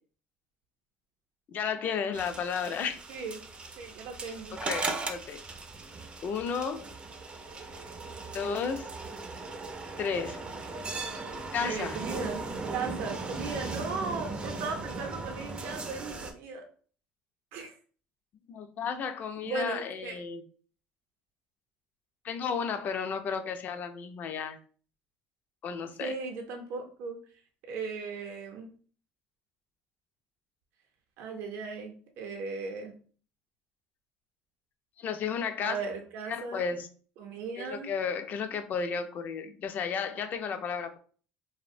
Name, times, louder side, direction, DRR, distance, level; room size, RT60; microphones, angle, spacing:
voice 1, 1.5-3.0 4.5-5.4 6.2-6.9 8.3-8.9 10.0-10.4 11.5-12.0 18.5-20.4 22.2-24.6 25.6-26.2 35.0-35.8 36.3-36.9 37.6-41.0, left 6 dB, 45° left, 8 dB, 0.3 m, -33 dB
sound 1, 2.1-16.3, right 3 dB, 25° right, 0.4 m, -38 dB
voice 2, 3.1-3.4 3.8-4.6 11.6-12.4 12.7-16.6 17.5-17.7 19.4-20.2 26.0-27.2 27.7-28.7 31.2-32.9 35.6-36.7 37.2-37.9, right 4 dB, 70° right, 3 dB, 0.6 m, -37 dB
2.5 x 2.0 x 2.5 m, 0.43 s
cardioid pair, 110°, 4 cm